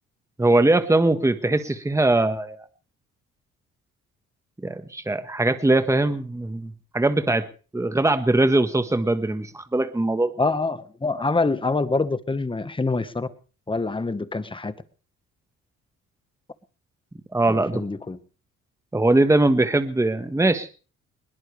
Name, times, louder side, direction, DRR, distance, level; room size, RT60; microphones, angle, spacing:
voice 1, 0.4-2.6 4.6-7.5 7.7-10.3 17.3-17.8 18.9-20.7, right 2 dB, 10° right, 1.5 m, -21 dB
voice 2, 10.4-13.3 13.7-14.7 17.5-18.2, left 3 dB, 15° left, 1.4 m, -25 dB
21.0 x 20.0 x 3.4 m
cardioid pair, 90°, 30 cm